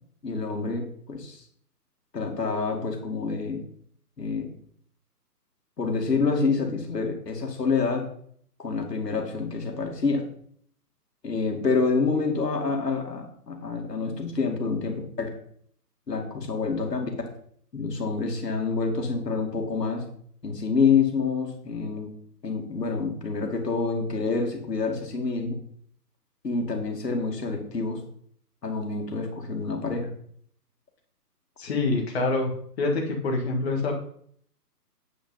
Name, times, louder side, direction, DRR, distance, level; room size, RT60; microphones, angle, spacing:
voice 1, 0.2-1.4 2.1-3.6 4.2-4.5 5.8-8.0 8.6-10.2 11.2-15.3 16.1-17.1 17.7-20.0 20.4-22.1 22.4-25.5 26.4-28.0 28.6-30.1, left 4 dB, 75° left, 3 dB, 2.5 m, -27 dB
voice 2, 31.6-32.5 32.8-34.0, left 3 dB, 40° left, 0 dB, 1.8 m, -26 dB
8.6 x 5.3 x 5.5 m, 0.62 s
figure-of-eight pair, 145°, 49 cm